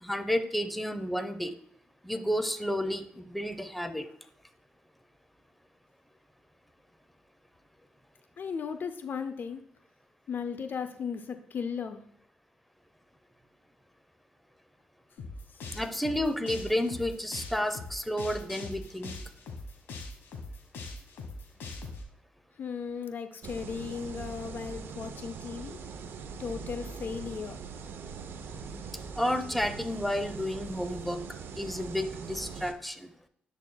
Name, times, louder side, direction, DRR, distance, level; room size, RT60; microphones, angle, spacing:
voice 1, 0.0-1.5 2.0-4.1 15.7-19.2 29.2-31.2 31.6-33.1, equal, ahead, 9 dB, 0.7 m, -31 dB
voice 2, 8.4-9.6 10.3-12.0 15.5-15.6 22.6-25.8 26.4-27.6, left 6 dB, 55° left, 9 dB, 0.6 m, -36 dB
sound 1, 15.2-22.0, left 3 dB, 70° left, 1.3 m, -41 dB
sound 2, 23.4-32.7, right 5 dB, 65° right, 0.6 m, -42 dB
10.5 x 4.1 x 2.3 m, 0.66 s
supercardioid pair, 55°, 4 cm